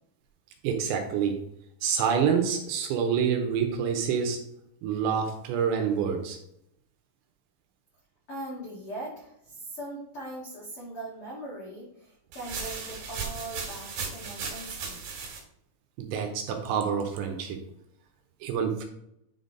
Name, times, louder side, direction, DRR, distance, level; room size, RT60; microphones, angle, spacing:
voice 1, 0.6-1.4 1.8-4.4 4.8-6.4 16.0-17.6 18.4-18.9, right 7 dB, 80° right, 4 dB, 2.7 m, -27 dB
voice 2, 8.3-15.0, right 1 dB, 75° left, -5 dB, 1.2 m, -40 dB
sound 1, 12.3-15.4, right 5 dB, 55° right, 2.7 m, -36 dB
10.0 x 3.9 x 3.9 m, 0.76 s
omnidirectional pair, 5.4 m